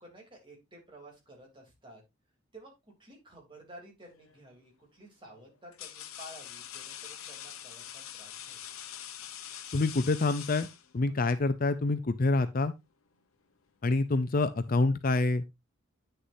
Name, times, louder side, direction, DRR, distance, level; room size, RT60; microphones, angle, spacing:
voice 1, 0.0-2.0 2.5-8.7, right 1 dB, 25° right, 3.1 m, -52 dB
sound 1, 4.1-4.5 5.3-11.2, left 10 dB, 80° left, 0.9 m, -44 dB
voice 2, 9.7-10.7 10.9-12.7 13.8-15.4, left 3 dB, 40° left, 0.5 m, -27 dB
9.5 x 6.7 x 2.7 m
head